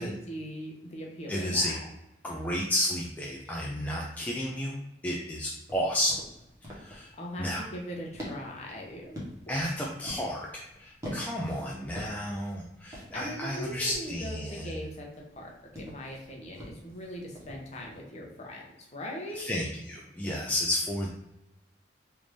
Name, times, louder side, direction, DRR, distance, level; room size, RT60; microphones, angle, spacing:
voice 1, 0.0-1.7 7.2-9.2 13.1-19.5, equal, 35° left, -1 dB, 0.7 m, -40 dB
voice 2, 1.3-1.8 2.2-4.8 5.0-6.2 6.7-7.1 7.4-7.6 9.5-14.8 19.4-21.1, left 1 dB, 10° left, -3 dB, 0.3 m, -32 dB
sound 1, 5.7-18.0, equal, 15° right, 1.0 m, -46 dB
3.4 x 2.5 x 3.1 m, 0.88 s
head